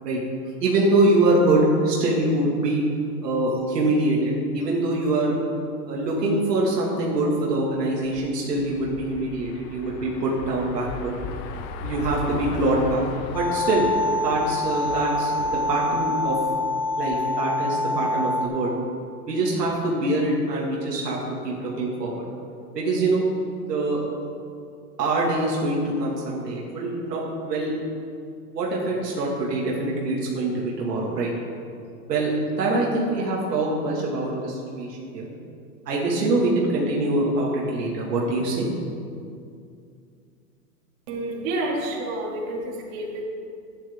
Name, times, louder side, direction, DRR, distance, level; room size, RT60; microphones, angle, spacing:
voice 1, 0.6-2.8 3.2-5.4 5.8-11.2 11.8-13.1 13.3-13.9 14.2-16.4 17.0-18.7 19.3-22.2 22.7-23.2 23.7-24.0 25.0-27.7 28.5-31.3 32.1-32.3 32.6-35.3 35.9-38.7, right 2 dB, 85° right, -4 dB, 2.1 m, -24 dB
sound 1, 8.0-17.3, left 4 dB, 40° left, 0.9 m, -38 dB
sound 2, 13.3-18.5, left 2 dB, 5° left, 0.3 m, -26 dB
voice 2, 41.1-43.2, right 1 dB, 55° right, -3 dB, 2.6 m, -29 dB
11.0 x 9.8 x 3.6 m, 2.4 s
hypercardioid pair, 110°, 47 cm